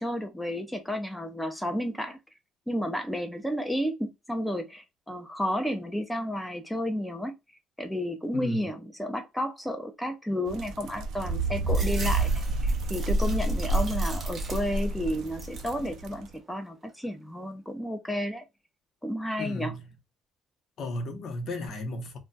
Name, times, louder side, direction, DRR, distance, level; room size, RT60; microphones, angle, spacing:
voice 1, 0.0-2.2 2.7-7.3 7.8-18.4 19.0-19.7, equal, 5° left, 0.6 m, -32 dB
voice 2, 8.3-8.7 19.4-19.9 20.8-22.2, left 2 dB, 50° left, 0.7 m, -34 dB
sound 1, 10.5-16.2, right 2 dB, 70° right, 0.4 m, -28 dB
sound 2, 11.7-15.0 15.3-15.9 16.3-17.0, right 3 dB, 30° right, 0.8 m, -43 dB
2.2 x 2.2 x 3.8 m
cardioid pair, 140°, 0 cm